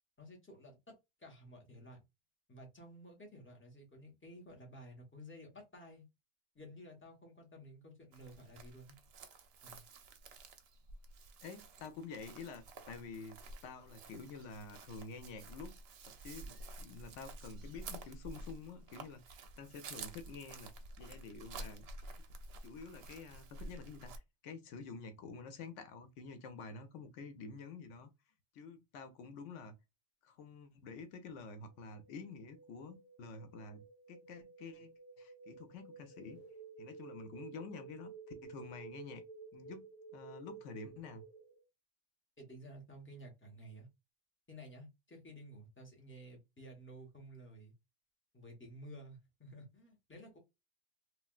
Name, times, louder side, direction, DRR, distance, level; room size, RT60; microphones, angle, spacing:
voice 1, 0.2-2.0 2.5-6.0 6.5-9.0 9.6-9.8 42.4-43.9 44.5-47.7 48.3-50.4, equal, 10° left, 1.0 m, -53 dB
Chirp tweet, 8.1-24.2, right 3 dB, 65° right, 0.8 m, -51 dB
voice 2, 11.4-15.7 16.1-20.7 21.0-21.9 22.6-28.1 28.5-29.8 30.2-36.4 36.8-38.1 38.4-39.2 39.5-39.8 40.1-41.2, left 4 dB, 90° left, 1.0 m, -49 dB
sound 1, 31.7-41.6, right 4 dB, 55° left, 1.1 m, -53 dB
3.2 x 2.4 x 2.3 m
omnidirectional pair, 1.2 m